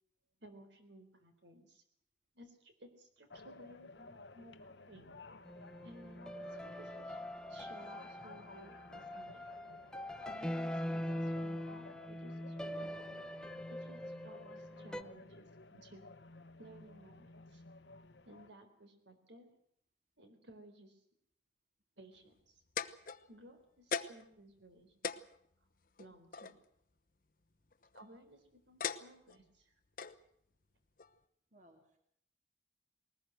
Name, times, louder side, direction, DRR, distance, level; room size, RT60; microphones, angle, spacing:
voice 1, 0.4-1.8 2.4-5.1 5.8-7.2 7.5-9.4 10.3-12.9 13.7-16.0 16.6-17.6 18.3-19.5 20.2-21.0 22.0-22.6 23.3-25.1 26.0-26.6 27.9-29.7, right 1 dB, 75° right, 7 dB, 3.9 m, -58 dB
sound 1, 3.3-18.5, left 3 dB, 70° left, 1.1 m, -55 dB
sound 2, 5.5-15.0, left 1 dB, 5° left, 0.8 m, -42 dB
sound 3, 22.4-23.5 23.9-24.3 24.7-24.8 25.0-26.6 27.6-28.1 28.8-29.4 30.0-30.2 31.0-31.1, left 6 dB, 50° left, 0.9 m, -40 dB
voice 2, 31.5-32.0, right 1 dB, 40° right, 4 dB, 2.8 m, -64 dB
20.5 x 19.5 x 7.8 m, 0.70 s
head